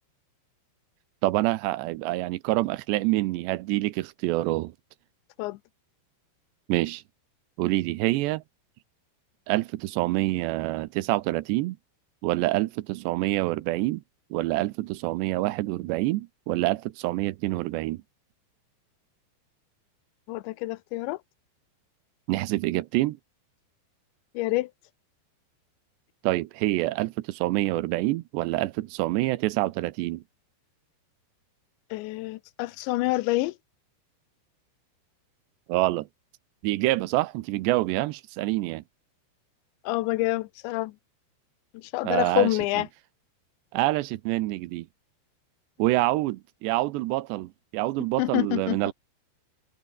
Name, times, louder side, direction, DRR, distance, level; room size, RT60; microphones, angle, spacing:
voice 1, 1.2-4.7 6.7-7.0 7.6-8.4 9.5-11.8 12.2-14.0 14.3-18.0 22.3-23.2 26.2-30.2 35.7-36.1 36.6-38.8 42.0-42.6 43.7-44.9 45.8-48.9, right 18 dB, 80° right, 2.9 m, -26 dB
voice 2, 20.3-21.2 24.4-24.7 31.9-33.5 39.9-40.9 41.7-42.9 48.2-48.8, left 20 dB, 85° left, 3.1 m, -27 dB
omnidirectional pair, 5.1 m